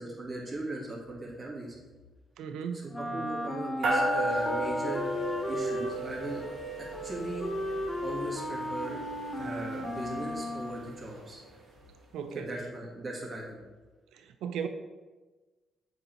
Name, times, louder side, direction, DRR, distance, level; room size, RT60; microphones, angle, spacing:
voice 1, 0.0-1.8 2.7-6.4 7.0-7.5 8.0-9.0 9.4-11.4 12.3-13.6, right 2 dB, 30° right, -3 dB, 2.4 m, -39 dB
voice 2, 2.4-3.2 12.1-12.5 14.1-14.7, right 7 dB, 85° right, 8 dB, 0.6 m, -37 dB
Wind instrument woodwind instrument, 2.9-11.0, left 1 dB, 15° left, 1.1 m, -36 dB
sound 1, 3.8-11.5, right 1 dB, 65° right, 2.1 m, -34 dB
7.3 x 5.2 x 4.5 m, 1.2 s
cardioid pair, 90°, 0 cm